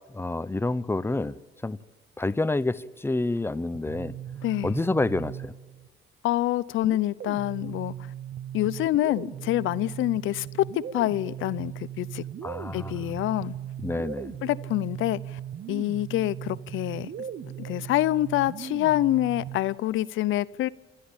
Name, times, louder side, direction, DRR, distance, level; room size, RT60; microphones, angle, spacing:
voice 1, 0.1-1.4 1.6-1.8 2.2-4.1 4.6-5.5 12.4-13.0 13.8-14.3, left 2 dB, 10° left, 16 dB, 0.7 m, -28 dB
sound 1, 3.7-5.9 6.8-19.8, right 10 dB, 55° right, 1.0 m, -38 dB
voice 2, 4.4-4.7 6.2-7.9 8.5-12.2 12.7-13.5 14.4-15.2 15.7-17.1 17.6-20.7, left 15 dB, 85° left, 19 dB, 0.6 m, -26 dB
29.0 x 13.0 x 8.8 m, 1.2 s
cardioid pair, 90°, 20 cm